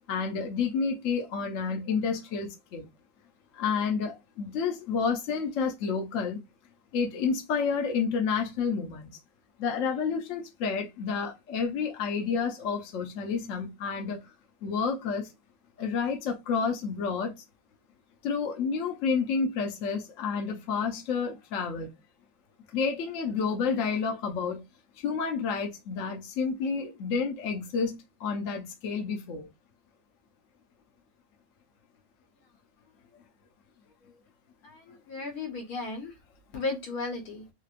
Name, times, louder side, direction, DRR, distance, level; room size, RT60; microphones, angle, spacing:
voice 1, 0.1-2.9 3.5-6.4 6.9-9.1 9.6-14.2 14.6-15.3 15.8-17.4 18.2-21.9 22.7-24.6 25.0-29.5, left 5 dB, 65° left, 1.0 m, -30 dB
voice 2, 34.6-36.1 36.5-37.4, left 3 dB, 80° left, 1.4 m, -35 dB
3.0 x 2.9 x 2.4 m
omnidirectional pair, 1.6 m